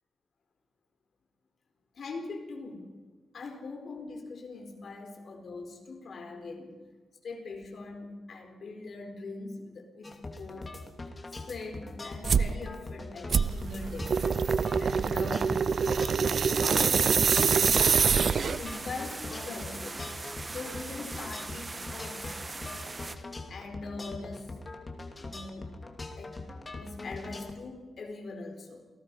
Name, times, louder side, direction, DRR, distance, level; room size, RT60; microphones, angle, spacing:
voice 1, 1.9-2.9 3.3-6.8 7.2-10.7 11.5-14.2 14.8-15.7 16.6-20.1 20.5-22.3 23.5-24.6 25.2-25.7 26.2-26.4 26.8-28.9, left 3 dB, 55° left, 3 dB, 4.5 m, -41 dB
sound 1, 10.0-27.5, left 2 dB, 25° left, 2.7 m, -42 dB
sound 2, 12.2-12.5 13.3-18.7, right 6 dB, 50° right, 0.6 m, -25 dB
sound 3, 17.5-23.2, right 3 dB, 25° right, 1.4 m, -41 dB
28.5 x 18.5 x 5.6 m, 1.3 s
wide cardioid pair, 140°, 0 cm